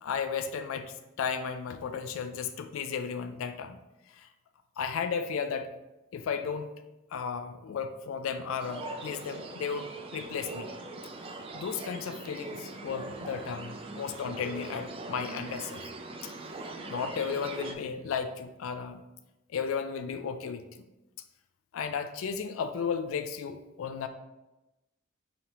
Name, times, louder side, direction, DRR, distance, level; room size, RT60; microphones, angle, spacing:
voice 1, 0.0-3.8 4.1-4.3 4.8-5.7 6.1-6.7 7.1-10.7 11.5-15.8 16.2-16.3 16.8-19.0 19.5-20.8 21.7-24.1, left 6 dB, 85° left, 8 dB, 0.3 m, -34 dB
sound 1, 8.6-17.7, right 2 dB, 25° right, 0.3 m, -41 dB
5.1 x 2.9 x 3.0 m, 1.0 s
head